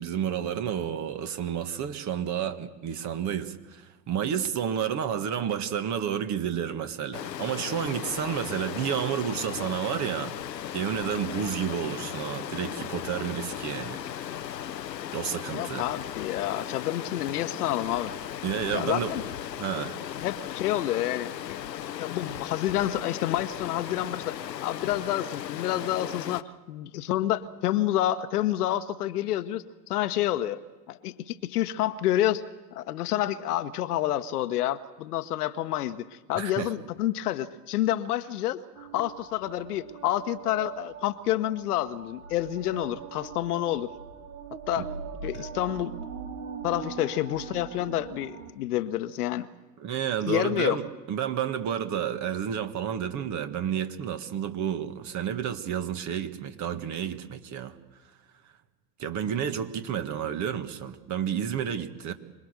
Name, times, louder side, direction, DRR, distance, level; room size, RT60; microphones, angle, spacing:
voice 1, 0.0-10.3 10.7-14.3 15.1-15.9 18.4-19.1 19.6-20.0 36.4-36.7 44.8-44.9 49.8-57.7 59.0-62.1, right 9 dB, 35° right, 9 dB, 1.8 m, -30 dB
Stream, 7.1-26.4, left 10 dB, 85° left, 0.9 m, -37 dB
voice 2, 15.5-18.1 18.7-19.2 20.2-30.6 30.9-32.4 32.7-43.9 44.7-44.9 45.2-45.9 46.6-49.5 50.2-50.8, left 13 dB, 65° left, 11 dB, 1.2 m, -29 dB
sound 1, 38.8-48.5, right 6 dB, 70° right, 2.0 m, -41 dB
26.0 x 20.5 x 6.7 m, 1.2 s
hypercardioid pair, 95°, 49 cm